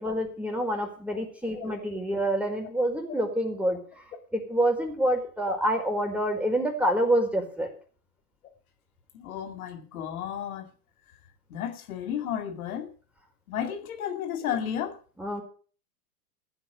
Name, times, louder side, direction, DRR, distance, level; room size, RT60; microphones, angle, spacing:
voice 1, 0.0-4.0 4.3-7.7 15.2-15.4, right 1 dB, 5° right, 4.7 m, -27 dB
voice 2, 9.1-10.7 11.5-12.9 13.5-15.0, left 9 dB, 70° left, 2.5 m, -33 dB
15.5 x 8.2 x 6.8 m
hypercardioid pair, 100°, 45 cm